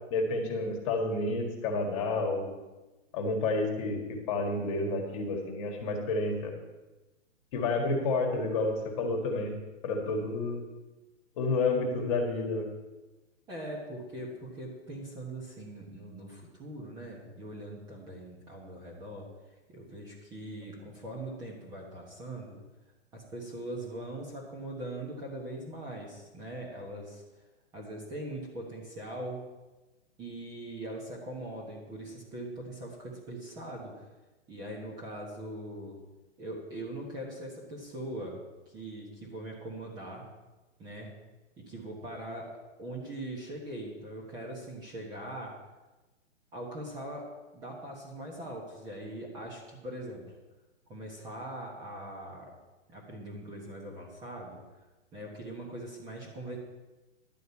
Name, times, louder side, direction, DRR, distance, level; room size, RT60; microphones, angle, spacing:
voice 1, 0.1-2.5 3.1-6.5 7.5-9.5 9.8-10.6 11.4-12.7, left 3 dB, 25° left, 2 dB, 1.7 m, -30 dB
voice 2, 13.5-19.3 19.7-22.6 23.1-27.2 27.7-29.4 30.2-34.1 34.5-36.0 36.4-38.4 38.7-40.2 40.8-41.1 41.6-42.5 42.8-45.5 46.5-47.3 47.5-50.2 50.9-52.5 52.9-54.6 55.1-56.6, right 1 dB, 10° right, -3 dB, 1.1 m, -41 dB
11.5 x 5.1 x 8.2 m, 1.1 s
hypercardioid pair, 165°, 37 cm